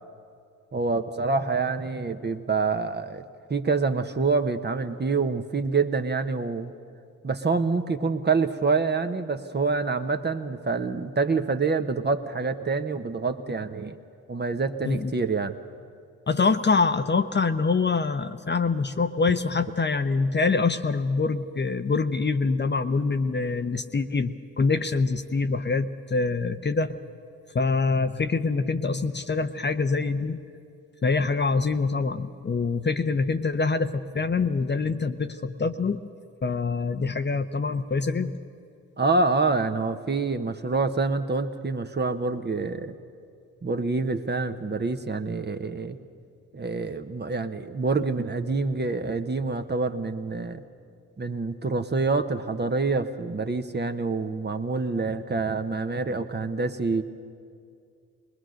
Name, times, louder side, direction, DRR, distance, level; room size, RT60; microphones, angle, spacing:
voice 1, 0.7-3.2 3.5-6.7 7.2-14.0 14.3-15.6 39.0-42.9 43.6-46.0 46.5-50.6 51.2-57.0, right 4 dB, 25° right, 8 dB, 1.1 m, -26 dB
voice 2, 16.3-26.9 27.5-30.4 31.0-36.0 36.4-38.3, left 4 dB, 30° left, 9 dB, 0.8 m, -25 dB
21.0 x 20.5 x 6.4 m, 2.4 s
hypercardioid pair, 45°, 37 cm